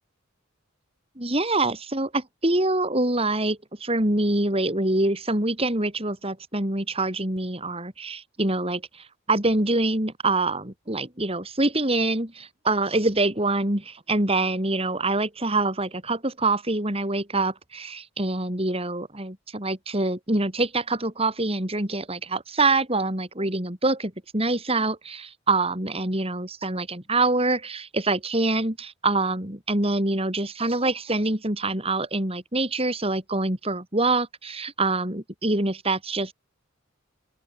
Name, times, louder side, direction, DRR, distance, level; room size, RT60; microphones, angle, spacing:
voice 1, 1.2-36.3, right 2 dB, 25° right, 3.5 m, -25 dB
open air
head